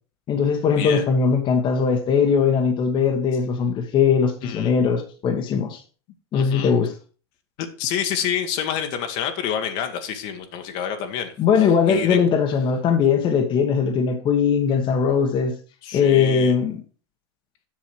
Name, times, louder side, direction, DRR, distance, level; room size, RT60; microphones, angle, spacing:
voice 1, 0.3-5.8 6.3-6.9 11.4-15.6 15.9-16.8, left 6 dB, 35° left, 1.3 m, -20 dB
voice 2, 4.4-4.7 6.3-6.7 7.6-11.4 11.9-12.2 15.8-16.5, left 9 dB, 55° left, 1.4 m, -28 dB
7.5 x 6.2 x 4.7 m
hypercardioid pair, 110°, 14 cm